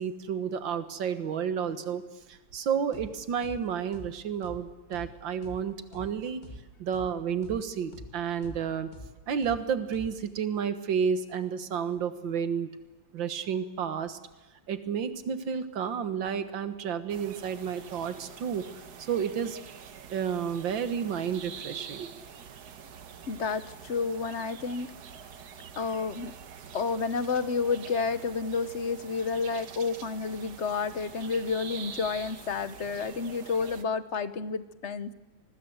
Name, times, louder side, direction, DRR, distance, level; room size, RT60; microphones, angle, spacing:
voice 1, 0.0-6.4 6.8-8.9 9.3-12.7 13.1-14.2 14.7-19.6 20.1-22.2, right 7 dB, 75° right, 11 dB, 2.0 m, -31 dB
sound 1, 2.9-3.1 3.4-3.6 3.9-4.1 4.4-4.6 4.9-5.1 5.4-5.6 5.9-6.1 6.4-6.6 6.9-7.1 7.4-7.6 7.9-8.1 8.4-8.6 8.9-9.1 9.4-9.6 9.9-10.1, left 1 dB, 25° left, 2.4 m, -44 dB
sound 2, 17.1-33.8, right 7 dB, 60° right, 1.6 m, -46 dB
voice 2, 23.3-24.9 25.8-26.3 26.7-35.1, left 5 dB, 45° left, 13 dB, 1.1 m, -30 dB
25.0 x 20.0 x 8.0 m, 1.1 s
omnidirectional pair, 2.1 m